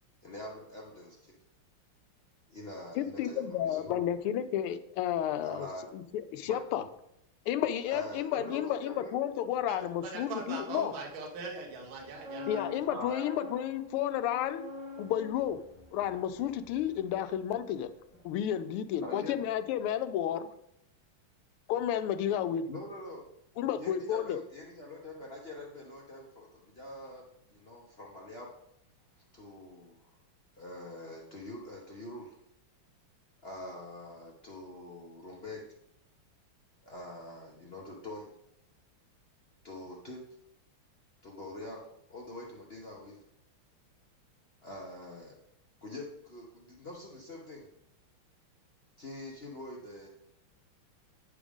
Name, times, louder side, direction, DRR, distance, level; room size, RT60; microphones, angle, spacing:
voice 1, 0.2-1.4 2.5-4.0 5.4-5.9 6.4-6.6 7.9-9.2 12.5-13.3 19.0-19.4 22.7-23.3 23.8-27.2 27.5-28.5 29.3-30.1 30.6-32.3 33.4-35.6 36.8-38.3 39.6-40.2 41.2-43.2 44.6-45.4 45.8-47.7 49.0-50.1, left 1 dB, 50° left, -3 dB, 0.7 m, -44 dB
voice 2, 2.9-5.7 5.9-6.8 7.5-10.9 12.5-14.6 15.0-15.6 15.9-17.9 18.2-20.5 21.7-22.7 23.6-24.4, left 10 dB, 85° left, 11 dB, 1.5 m, -32 dB
voice 3, 9.7-13.1, right 4 dB, 70° right, 1 dB, 1.9 m, -41 dB
sound 1, 11.9-17.8 18.1-18.4, left 3 dB, 20° left, 2.6 m, -46 dB
9.8 x 4.9 x 3.5 m, 0.77 s
omnidirectional pair, 2.4 m